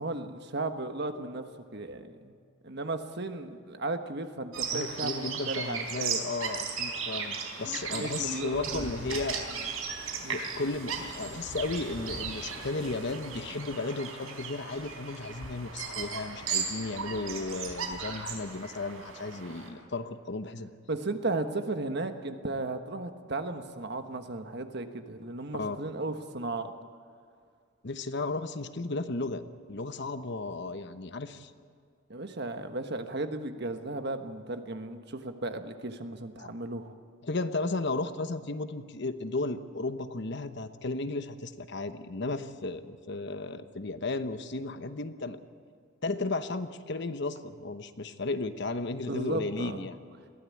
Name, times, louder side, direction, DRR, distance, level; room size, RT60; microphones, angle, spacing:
voice 1, 0.0-2.3 2.6-6.2 7.6-9.2 10.2-10.4 20.9-26.7 32.1-36.9 49.1-49.9, right 2 dB, 55° right, 7 dB, 1.4 m, -35 dB
Bird vocalization bird call bird song, 4.5-19.7, right 5 dB, 90° right, 4.4 m, -36 dB
voice 2, 4.7-9.4 10.3-20.7 25.6-25.8 27.8-29.4 29.7-31.5 36.4-36.5 37.2-45.4 46.0-50.0, left 3 dB, 55° left, 10 dB, 1.0 m, -34 dB
22.0 x 16.0 x 8.5 m, 2.1 s
head